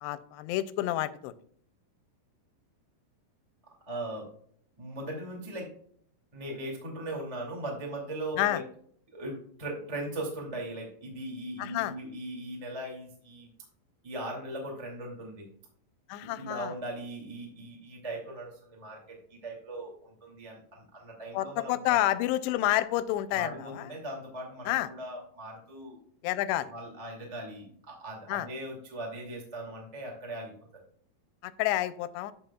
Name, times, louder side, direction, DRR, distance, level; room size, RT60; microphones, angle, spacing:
voice 1, 0.0-1.3 8.4-8.6 11.6-11.9 16.1-16.7 21.3-23.9 24.7-24.9 26.2-26.7 28.3-28.5 31.4-32.3, left 14 dB, 90° left, 14 dB, 2.7 m, -29 dB
voice 2, 3.8-4.3 4.8-5.7 6.3-8.6 9.1-13.5 14.0-15.4 16.2-22.0 23.3-26.0 26.7-30.5, right 1 dB, 15° right, -1 dB, 1.4 m, -39 dB
13.5 x 5.4 x 2.3 m, 0.62 s
omnidirectional pair, 4.8 m